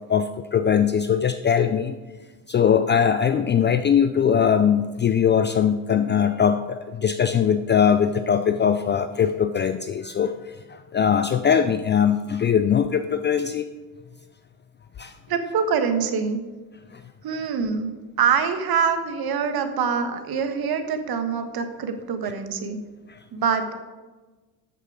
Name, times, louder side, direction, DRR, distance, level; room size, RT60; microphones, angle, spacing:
voice 1, 0.1-2.0 2.5-10.3 10.7-13.6 15.0-15.1, left 7 dB, 25° left, 10 dB, 0.4 m, -21 dB
voice 2, 15.3-16.4 17.2-17.9 18.2-22.8 23.3-23.8, right 6 dB, 45° right, 8 dB, 1.5 m, -24 dB
13.0 x 6.5 x 4.9 m, 1.3 s
hypercardioid pair, 70°, 50 cm